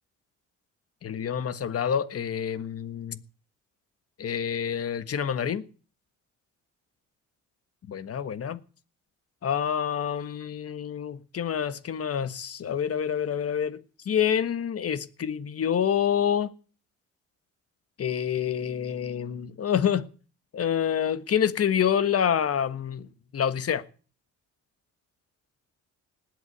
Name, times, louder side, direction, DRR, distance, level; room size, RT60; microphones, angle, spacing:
voice 1, 1.0-3.2 4.2-5.6 7.9-8.6 9.4-13.8 14.0-16.5 18.0-20.0 20.5-23.1 23.3-23.8, left 8 dB, 50° left, 1.4 m, -27 dB
19.5 x 8.4 x 8.1 m
cardioid pair, 90°, 30 cm